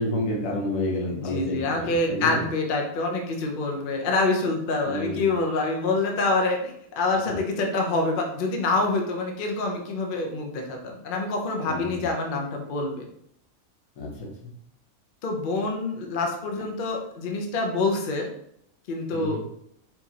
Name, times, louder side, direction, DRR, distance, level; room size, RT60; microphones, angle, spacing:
voice 1, 0.0-2.4 4.8-5.3 11.6-12.1 14.0-14.3 19.1-19.4, left 1 dB, 65° left, -3 dB, 1.4 m, -29 dB
voice 2, 1.1-13.1 15.2-18.3 18.9-19.4, left 3 dB, 50° left, 2 dB, 0.7 m, -26 dB
4.6 x 3.0 x 2.8 m, 0.71 s
omnidirectional pair, 1.5 m